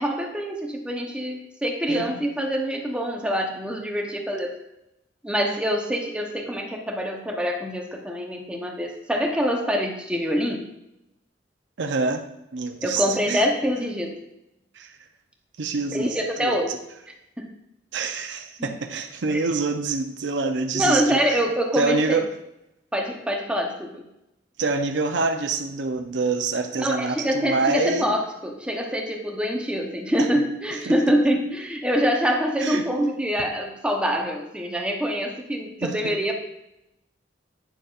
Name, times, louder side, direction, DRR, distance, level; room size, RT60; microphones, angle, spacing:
voice 1, 0.0-4.6 5.2-10.6 12.8-14.1 15.9-16.7 17.4-17.5 18.6-18.7 19.3-19.4 20.7-22.2 22.9-24.0 26.8-36.4, equal, 5° right, 1 dB, 0.9 m, -25 dB
voice 2, 11.8-12.2 12.5-13.4 14.7-14.9 15.6-16.6 17.9-21.4 21.7-22.3 24.6-28.1 30.2-30.3 30.9-31.0 32.6-32.8 35.8-36.2, right 3 dB, 75° right, 5 dB, 0.6 m, -26 dB
9.2 x 6.7 x 2.5 m, 0.88 s
head